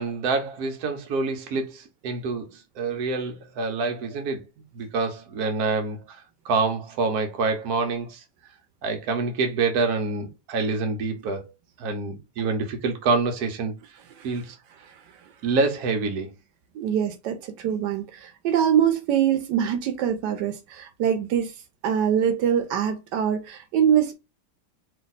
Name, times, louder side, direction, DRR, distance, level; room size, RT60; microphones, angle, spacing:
voice 1, 0.0-4.4 4.7-8.2 8.8-11.4 11.8-13.7 14.2-14.6 15.4-16.3, right 4 dB, 65° right, 1.3 m, -26 dB
voice 2, 16.7-21.5 21.8-24.1, right 9 dB, 85° right, 1.2 m, -24 dB
3.4 x 2.7 x 3.9 m
omnidirectional pair, 1.8 m